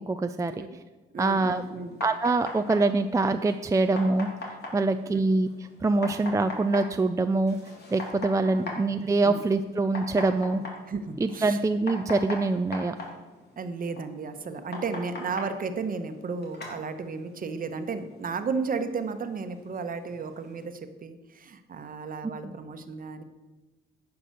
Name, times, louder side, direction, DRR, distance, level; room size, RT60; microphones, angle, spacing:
voice 1, 0.1-0.5 1.2-1.6 2.0-4.3 4.7-5.5 5.8-7.6 7.9-10.6 11.2-13.0, right 3 dB, 15° right, 8 dB, 0.4 m, -24 dB
voice 2, 1.1-2.0 5.1-5.2 8.5-8.8 9.2-9.4 10.9-11.6 13.6-23.2, right 4 dB, 45° right, 9 dB, 1.1 m, -34 dB
sound 1, 1.6-20.6, left 2 dB, 55° left, 2.9 m, -42 dB
10.0 x 6.0 x 6.7 m, 1.2 s
cardioid pair, 90°, 20 cm